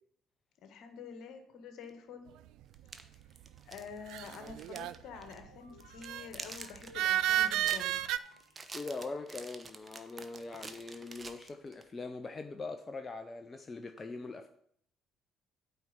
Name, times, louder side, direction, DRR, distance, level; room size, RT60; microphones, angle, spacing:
voice 1, 0.6-2.3 3.6-8.0, left 6 dB, 60° left, 7 dB, 1.5 m, -48 dB
sound 1, 1.9-2.0 2.7-5.0 5.2-5.4 5.8-11.9, right 3 dB, 30° right, 1.0 m, -48 dB
sound 2, 4.1-5.1 6.0-6.3 6.9-8.2, right 13 dB, 60° right, 0.3 m, -31 dB
sound 3, 4.9-9.1, left 5 dB, 85° left, 0.7 m, -58 dB
voice 2, 8.7-14.5, left 3 dB, 30° left, 7 dB, 0.7 m, -42 dB
9.1 x 4.6 x 7.4 m, 0.67 s
figure-of-eight pair, 50°, 0 cm